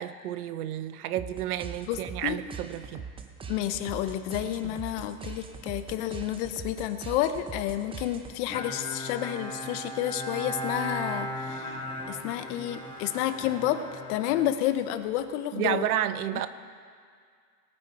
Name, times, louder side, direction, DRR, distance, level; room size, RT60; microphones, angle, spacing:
voice 1, 0.0-3.1 4.6-4.8 15.5-16.5, right 12 dB, 75° right, 13 dB, 0.8 m, -31 dB
sound 1, 1.1-8.6, right 5 dB, 10° right, 0.6 m, -42 dB
voice 2, 1.9-2.4 3.5-11.8 12.1-13.8 14.1-15.9, left 12 dB, 50° left, 10 dB, 0.9 m, -30 dB
Bowed string instrument, 8.5-15.2, equal, 10° left, 1.8 m, -37 dB
19.0 x 8.9 x 4.3 m, 2.1 s
hypercardioid pair, 120°, 45 cm